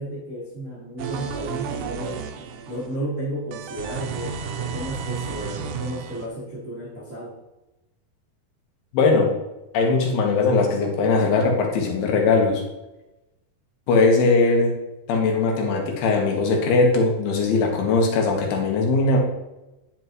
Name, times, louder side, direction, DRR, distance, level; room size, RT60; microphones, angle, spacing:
voice 1, 0.0-2.2 2.7-7.4, right 1 dB, 65° right, -8 dB, 0.7 m, -33 dB
sound 1, 1.0-3.0 3.5-6.3, right 6 dB, 80° right, 2.0 m, -32 dB
voice 2, 8.9-9.3 9.7-12.6 13.9-14.8 15.1-19.2, left 3 dB, 70° left, 1 dB, 3.2 m, -20 dB
10.0 x 6.8 x 3.0 m, 0.98 s
omnidirectional pair, 4.7 m